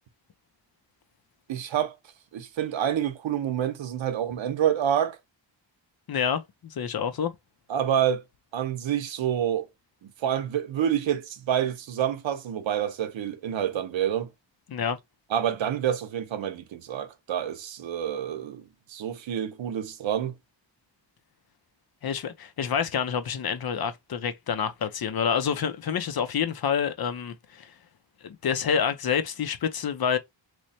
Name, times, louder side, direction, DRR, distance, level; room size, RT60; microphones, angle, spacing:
voice 1, 1.5-1.9 2.3-5.2 7.7-8.2 8.5-9.7 10.0-14.3 15.3-20.3, right 9 dB, 85° right, 0.7 m, -28 dB
voice 2, 6.1-7.3 14.7-15.0 22.0-27.7 28.2-30.2, left 7 dB, 55° left, 0.6 m, -28 dB
3.1 x 2.1 x 4.1 m
wide cardioid pair, 140°, 45 cm